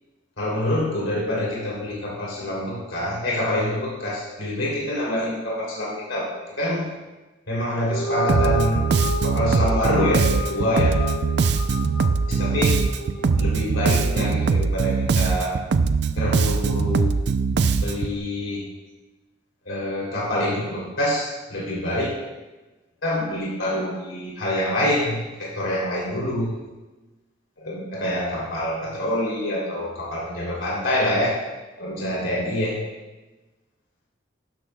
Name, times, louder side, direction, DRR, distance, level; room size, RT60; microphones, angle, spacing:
voice 1, 0.4-6.3 6.6-6.9 7.5-8.8 9.2-11.0 12.3-12.8 13.4-15.6 16.1-17.1 17.8-18.6 19.7-22.1 23.0-26.5 27.6-31.3 31.8-32.9, left 1 dB, 85° left, -5 dB, 2.9 m, -26 dB
sound 1, 7.8-14.4, equal, 45° left, 0.7 m, -31 dB
Bass guitar, 8.3-18.2, right 5 dB, 55° right, 0.4 m, -21 dB
12.0 x 10.5 x 2.2 m, 1.1 s
head